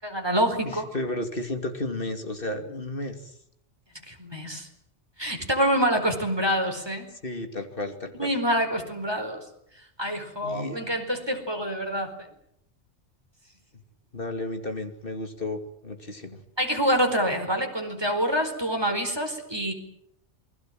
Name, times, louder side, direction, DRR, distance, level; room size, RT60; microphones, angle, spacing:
voice 1, 0.0-0.8 4.1-4.7 5.2-7.1 8.2-9.4 10.0-12.3 16.6-19.7, equal, 20° right, 4 dB, 4.6 m, -26 dB
voice 2, 0.6-3.3 7.2-8.3 10.4-10.8 14.1-16.4, left 2 dB, 50° left, 6 dB, 2.8 m, -33 dB
28.5 x 22.0 x 7.7 m, 0.74 s
omnidirectional pair, 1.2 m